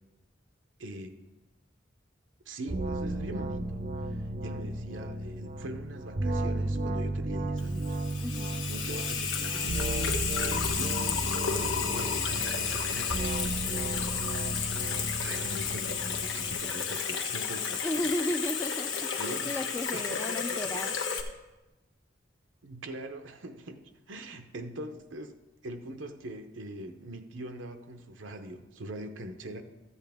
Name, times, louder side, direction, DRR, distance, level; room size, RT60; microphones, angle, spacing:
voice 1, 0.8-1.2 2.5-8.0 8.7-9.8 10.6-13.5 15.1-17.8 19.2-19.6 19.9-20.8 22.6-25.3 25.6-29.6, right 1 dB, 80° right, 6 dB, 0.8 m, -42 dB
sound 1, 2.7-16.5, right 2 dB, 40° right, 0.6 m, -34 dB
Water tap faucet / Sink (filling or washing), 7.6-21.2, left 6 dB, 90° left, 1.1 m, -32 dB
voice 2, 8.2-8.6 17.8-21.0, left 1 dB, 15° left, 5 dB, 0.3 m, -34 dB
13.5 x 8.3 x 3.5 m, 1.1 s
head